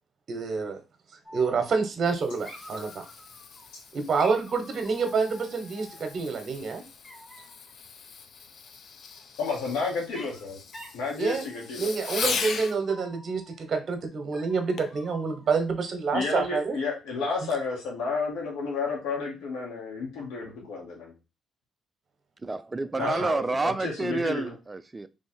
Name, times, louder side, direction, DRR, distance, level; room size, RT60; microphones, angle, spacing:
voice 1, 0.3-0.8 1.3-3.0 3.9-6.8 11.2-11.5 11.8-16.8 23.0-23.3, right 4 dB, 50° right, 1.2 m, -28 dB
Dog, 1.2-2.2 2.4-3.7 4.2-6.3 7.0-7.7 9.1-9.8 10.1-10.4 10.7-11.0 11.4-11.8 12.1-13.6 14.3-15.5, left 1 dB, 20° left, 1.6 m, -47 dB
Fireworks, 1.8-12.8 14.8-15.0 15.6-15.7, left 5 dB, 60° left, 0.6 m, -39 dB
voice 2, 9.4-10.6 10.9-12.0 12.2-12.3 16.1-21.1 23.0-24.5, left 4 dB, 90° left, 1.6 m, -31 dB
voice 3, 22.4-25.1, right 3 dB, 20° right, 0.4 m, -29 dB
3.5 x 3.2 x 4.4 m
cardioid pair, 90°, 0 cm